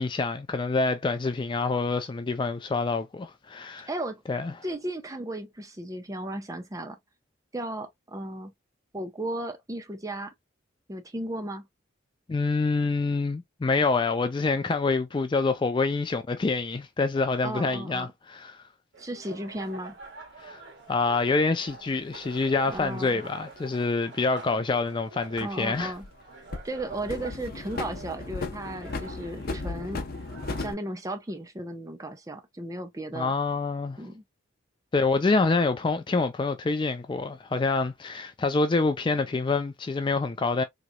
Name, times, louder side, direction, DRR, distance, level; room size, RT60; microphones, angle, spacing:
voice 1, 0.0-3.9 4.3-4.5 12.3-18.6 20.4-20.6 20.9-25.9 33.1-34.0 34.9-40.6, left 3 dB, 25° left, 0.3 m, -26 dB
voice 2, 3.9-4.2 4.6-7.0 7.5-8.5 8.9-10.3 10.9-11.7 17.4-18.1 19.0-19.9 22.7-23.2 25.4-26.1 26.6-30.0 30.6-33.3 34.0-34.2, right 1 dB, 15° right, 0.6 m, -35 dB
sound 1, 18.9-30.7, right 3 dB, 60° right, 1.5 m, -47 dB
sound 2, 20.0-20.1 21.7-23.0 25.2-26.2 26.5-30.7, left 3 dB, 50° left, 0.7 m, -36 dB
3.8 x 3.0 x 2.2 m
head